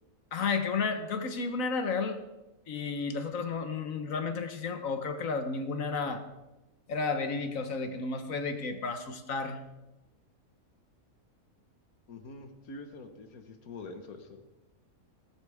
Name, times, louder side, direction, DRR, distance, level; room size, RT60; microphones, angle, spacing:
voice 1, 0.3-2.2 2.7-6.2 6.9-9.6, left 4 dB, 70° left, 7 dB, 1.4 m, -32 dB
voice 2, 12.1-14.4, left 3 dB, 90° left, 7 dB, 1.7 m, -45 dB
17.5 x 12.5 x 3.5 m, 1.0 s
omnidirectional pair, 1.5 m